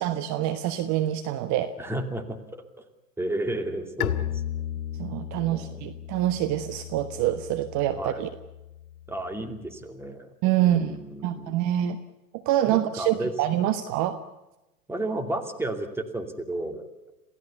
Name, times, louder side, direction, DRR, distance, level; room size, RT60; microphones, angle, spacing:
voice 1, 0.0-1.7 5.0-8.3 10.4-11.0 11.2-12.0 12.4-14.2, right 12 dB, 35° right, 10 dB, 1.3 m, -26 dB
voice 2, 1.8-2.6 3.2-4.4 5.4-5.9 8.0-8.2 9.1-10.3 10.6-11.6 12.7-13.3 14.9-16.9, right 1 dB, 5° right, 5 dB, 2.6 m, -33 dB
Bowed string instrument, 4.0-9.6, left 11 dB, 65° left, 2.5 m, -35 dB
27.5 x 16.5 x 7.0 m, 1.0 s
hypercardioid pair, 105°, 47 cm